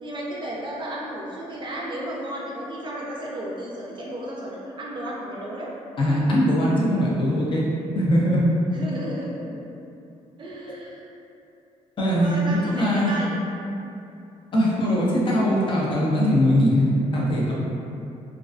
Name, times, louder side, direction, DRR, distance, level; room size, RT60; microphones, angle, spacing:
voice 1, 0.0-5.7 8.7-9.7 10.4-11.0 12.2-13.3, right 1 dB, 40° right, -4 dB, 0.4 m, -33 dB
voice 2, 6.0-7.7 7.9-8.4 12.0-13.1 14.5-17.5, equal, 40° left, -5 dB, 0.5 m, -21 dB
2.3 x 2.2 x 2.4 m, 2.7 s
cardioid pair, 85°, 13 cm